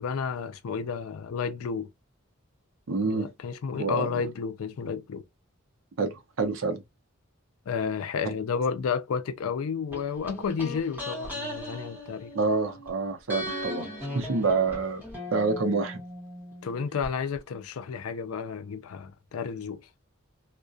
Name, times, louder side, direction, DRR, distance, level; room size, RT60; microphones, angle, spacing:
voice 1, 0.0-1.9 3.1-5.2 7.7-12.3 16.6-19.8, left 6 dB, 85° left, 0.4 m, -31 dB
voice 2, 2.9-3.3 3.7-4.2 6.0-6.8 12.3-15.0 15.3-16.0, right 4 dB, 70° right, 0.6 m, -27 dB
sound 1, 9.9-12.9 13.3-17.1 17.4-17.5, left 1 dB, 10° right, 1.0 m, -38 dB
2.3 x 2.1 x 2.4 m
head